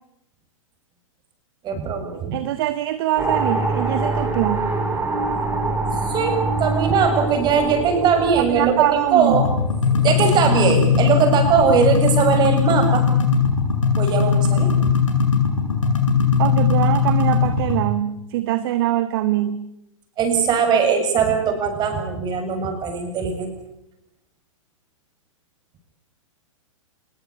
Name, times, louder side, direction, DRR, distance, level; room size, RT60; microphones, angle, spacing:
voice 1, 1.6-2.4 6.0-8.8 9.1-9.4 10.0-13.0 14.0-14.7 20.2-23.5, right 6 dB, 25° right, 5 dB, 7.0 m, -20 dB
voice 2, 2.3-4.8 8.3-9.4 16.4-19.7, right 13 dB, 45° right, 11 dB, 1.6 m, -23 dB
sound 1, 3.2-9.6, right 2 dB, 10° right, 6.0 m, -25 dB
sound 2, 9.3-17.8, left 6 dB, 70° left, 7.9 m, -19 dB
26.0 x 21.5 x 8.7 m, 0.83 s
figure-of-eight pair, 105°, 17 cm